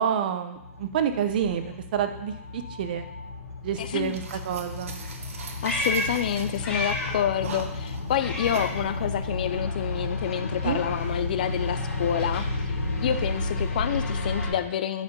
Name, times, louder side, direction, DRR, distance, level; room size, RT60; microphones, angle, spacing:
voice 1, 0.0-1.6 1.9-3.1 3.6-5.0 10.6-10.8, right 8 dB, 35° right, 9 dB, 0.7 m, -28 dB
sound 1, 0.6-14.5, left 2 dB, 90° left, 3.3 m, -32 dB
voice 2, 3.8-4.2 5.6-15.0, left 9 dB, 35° left, 11 dB, 0.3 m, -28 dB
sound 2, 4.0-8.8, right 5 dB, 60° right, 1.2 m, -41 dB
Meow, 5.2-7.3 7.6-9.3 9.6-13.8, left 1 dB, 10° left, 1.5 m, -35 dB
10.5 x 5.0 x 5.3 m, 0.87 s
hypercardioid pair, 170°, 8 cm